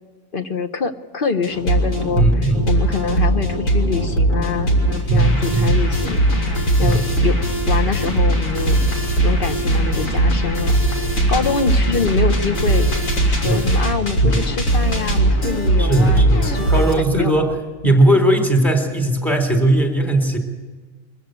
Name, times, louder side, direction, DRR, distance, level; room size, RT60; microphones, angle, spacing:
voice 1, 0.3-7.4 7.7-8.8 9.2-12.9 13.3-16.7 17.1-17.5 17.8-17.9, left 5 dB, 45° left, 8 dB, 1.1 m, -25 dB
sound 1, 1.4-16.9, right 1 dB, 75° left, 3.3 m, -19 dB
voice 2, 2.2-2.7 5.1-5.8 6.8-7.0 13.4-13.7 14.2-14.4 15.8-20.4, right 1 dB, ahead, 4 dB, 3.5 m, -18 dB
23.0 x 15.0 x 9.2 m, 1.3 s
omnidirectional pair, 1.4 m